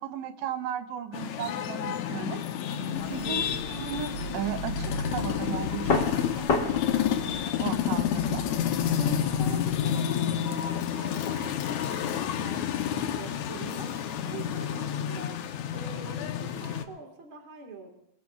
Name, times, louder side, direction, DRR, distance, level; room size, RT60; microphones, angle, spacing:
voice 1, 0.0-2.4 3.1-6.7 7.6-8.4, right 9 dB, 70° right, 8 dB, 2.0 m, -35 dB
sound 1, 1.1-16.8, left 9 dB, 70° left, 1.9 m, -30 dB
sound 2, 2.9-9.8, left 3 dB, 50° left, 0.9 m, -34 dB
voice 2, 2.9-3.2 8.9-13.9 14.2-15.4 15.7-17.9, right 3 dB, 45° right, 2 dB, 2.2 m, -43 dB
28.0 x 20.0 x 2.4 m, 0.75 s
omnidirectional pair, 3.9 m